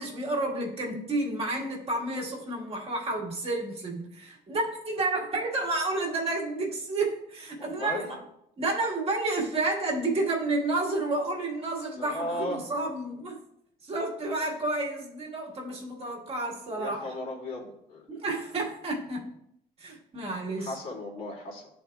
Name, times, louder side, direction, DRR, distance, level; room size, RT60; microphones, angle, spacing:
voice 1, 0.0-8.2 8.6-13.4 13.8-17.2 18.1-19.3 19.8-20.7, right 2 dB, 35° right, -2 dB, 1.6 m, -30 dB
voice 2, 7.6-8.1 11.9-12.6 16.7-18.0 20.6-21.8, left 1 dB, 60° left, -4 dB, 2.4 m, -36 dB
11.0 x 4.2 x 2.3 m, 0.76 s
cardioid pair, 110°, 17 cm